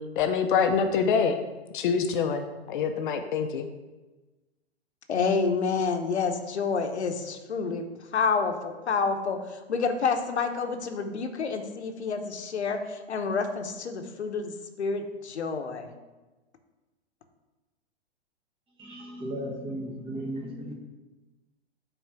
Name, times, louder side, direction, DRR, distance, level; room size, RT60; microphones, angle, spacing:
voice 1, 0.2-1.4 1.7-3.7, left 6 dB, 50° left, 6 dB, 0.6 m, -25 dB
voice 2, 5.1-7.9 8.1-14.5 14.8-15.9, left 5 dB, 85° left, 6 dB, 0.9 m, -28 dB
voice 3, 18.8-20.8, equal, 15° right, 1 dB, 1.1 m, -35 dB
5.6 x 4.2 x 5.8 m, 1.2 s
hypercardioid pair, 120°, 33 cm